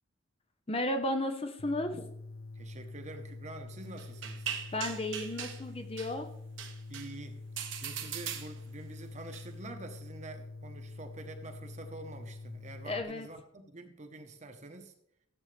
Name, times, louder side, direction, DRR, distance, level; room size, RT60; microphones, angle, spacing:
voice 1, 0.7-2.1 4.7-6.3 12.9-13.3, left 1 dB, 30° left, 6 dB, 1.0 m, -33 dB
sound 1, 1.6-13.0, left 3 dB, 75° left, 1.0 m, -46 dB
voice 2, 2.5-4.5 6.9-7.4 7.8-14.9, right 2 dB, 35° right, 5 dB, 1.2 m, -47 dB
sound 2, 4.0-5.6 6.0-6.1 6.6-7.1 7.6-8.8 9.3-9.4, right 8 dB, 70° right, 1.2 m, -40 dB
15.5 x 8.0 x 3.4 m, 0.73 s
head